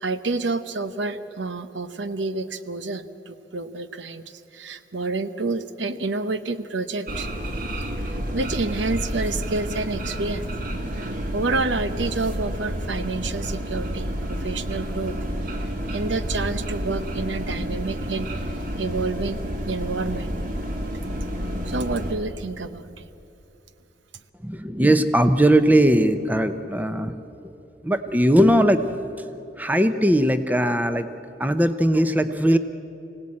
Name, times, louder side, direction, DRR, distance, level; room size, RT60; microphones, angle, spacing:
voice 1, 0.0-7.3 7.8-7.9 8.3-10.4 10.9-15.2 15.9-20.3 21.7-23.1, right 3 dB, 85° right, 11 dB, 0.9 m, -29 dB
sound 1, 7.1-22.1, equal, 50° right, 2.2 m, -30 dB
voice 2, 24.4-27.1 27.8-28.8 29.6-31.1 31.4-32.6, right 1 dB, 10° right, 10 dB, 0.7 m, -19 dB
25.0 x 17.5 x 8.6 m, 2.9 s
head